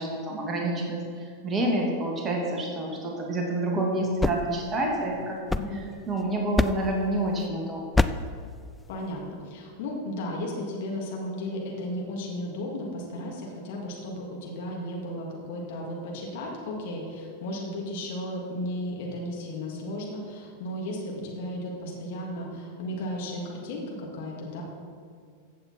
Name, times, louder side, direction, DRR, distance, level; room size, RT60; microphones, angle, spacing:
voice 1, 0.0-5.4 6.1-7.9, right 1 dB, 20° right, 0 dB, 2.0 m, -28 dB
sound 1, 3.9-6.1 6.6-7.1 7.9-8.4, left 3 dB, 5° left, 0.4 m, -27 dB
voice 2, 8.9-24.6, left 1 dB, 50° left, -2 dB, 2.5 m, -34 dB
14.5 x 7.7 x 4.4 m, 2.1 s
figure-of-eight pair, 90°, 0 cm